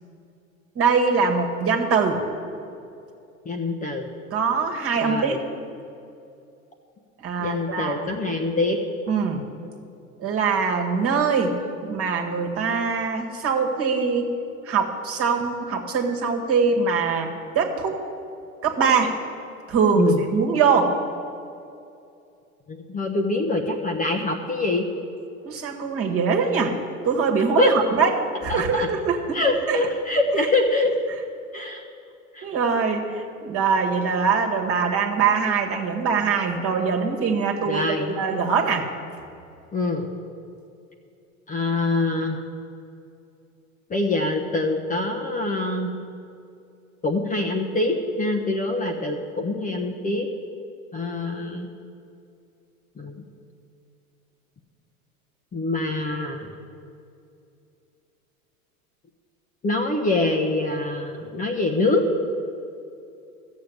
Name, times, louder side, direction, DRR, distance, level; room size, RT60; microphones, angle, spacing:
voice 1, 0.8-2.2 4.3-5.4 7.2-8.1 9.1-9.4 10.2-11.5 11.8-14.3 14.7-18.0 18.6-19.1 19.7-20.9 25.4-26.8 27.0-28.1 28.4-29.8 32.4-38.9, right 5 dB, 30° right, 2 dB, 1.8 m, -23 dB
voice 2, 3.4-4.1 5.0-5.4 7.4-8.8 20.0-20.2 22.7-24.9 27.6-27.7 28.5-28.9 29.3-30.9 31.5-31.8 32.3-32.5 37.7-38.1 39.7-40.1 41.5-42.4 43.9-45.9 47.0-50.3 50.9-51.7 53.0-53.2 55.5-56.5 59.6-62.0, left 2 dB, 20° left, 2 dB, 1.1 m, -24 dB
13.5 x 7.4 x 7.9 m, 2.6 s
hypercardioid pair, 100°, 43 cm